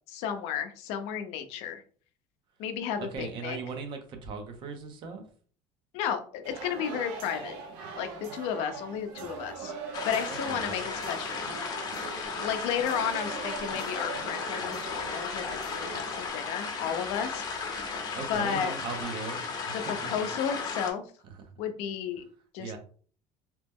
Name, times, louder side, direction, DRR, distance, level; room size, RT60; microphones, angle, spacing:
voice 1, 0.1-1.8 2.6-3.6 5.9-7.6 8.0-9.7 10.0-11.4 12.4-17.4 18.3-18.7 20.0-21.0 21.6-22.2 22.5-22.7, left 8 dB, 75° left, 7 dB, 0.5 m, -33 dB
voice 2, 3.0-5.2 10.5-10.8 12.1-12.3 18.1-20.2 21.2-21.5 22.6-22.8, right 4 dB, 50° right, 6 dB, 0.7 m, -39 dB
sound 1, 6.4-16.3, right 5 dB, 85° right, 0.7 m, -41 dB
sound 2, 9.9-20.9, left 5 dB, 40° left, 0.7 m, -35 dB
2.9 x 2.1 x 3.4 m, 0.44 s
cardioid pair, 130°, 11 cm